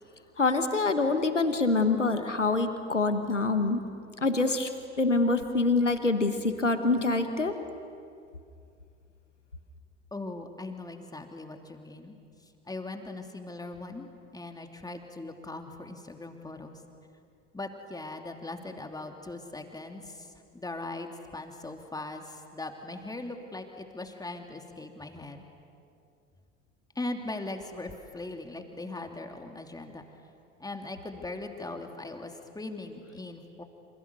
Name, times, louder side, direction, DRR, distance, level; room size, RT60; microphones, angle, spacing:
voice 1, 0.4-3.8 4.2-4.7 5.0-7.5, left 3 dB, 90° left, 9 dB, 1.4 m, -25 dB
voice 2, 10.1-12.2 12.7-14.1 14.3-16.8 17.5-25.4 26.9-30.0 30.6-33.6, left 2 dB, 10° left, 4 dB, 2.8 m, -40 dB
28.5 x 27.5 x 6.9 m, 2.4 s
figure-of-eight pair, 65°, 35 cm